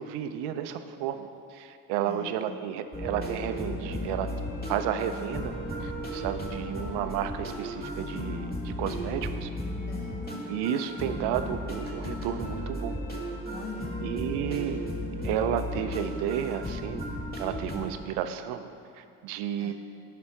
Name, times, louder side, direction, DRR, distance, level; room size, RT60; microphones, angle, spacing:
voice 1, 0.0-4.3 4.7-5.5 5.8-9.5 10.5-12.9 14.0-14.8 15.2-17.1 17.4-18.7 18.9-19.7, right 10 dB, 75° right, 9 dB, 0.7 m, -32 dB
voice 2, 2.0-2.6 9.9-10.5 13.5-14.0 19.6-19.7, left 5 dB, 40° left, 1 dB, 0.9 m, -43 dB
sound 1, 2.9-17.9, equal, 20° left, 2.2 m, -35 dB
11.0 x 5.1 x 4.8 m, 2.4 s
hypercardioid pair, 60°, 41 cm